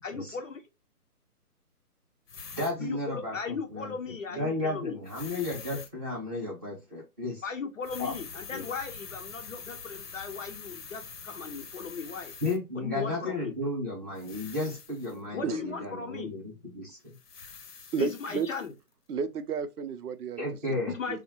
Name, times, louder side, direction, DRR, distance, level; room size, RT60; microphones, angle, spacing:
voice 1, 0.0-0.6 2.8-5.0 7.4-12.3 12.8-13.6 15.3-16.3 18.0-18.7 20.9-21.2, left 5 dB, 60° left, 0.5 m, -37 dB
sound 1, 2.3-2.7 5.1-5.9 7.8-12.6 14.2-15.2 17.1-18.7, left 5 dB, 90° left, 0.8 m, -45 dB
voice 2, 2.5-3.3 3.7-3.9 4.3-7.4 8.0-8.1 8.5-8.6 12.4-16.4 16.7-17.1 20.4-20.9, left 2 dB, 10° right, 0.8 m, -33 dB
voice 3, 17.9-18.5 19.1-20.4 20.8-21.2, right 6 dB, 75° right, 0.6 m, -32 dB
3.4 x 2.0 x 2.9 m
figure-of-eight pair, 150°, 46 cm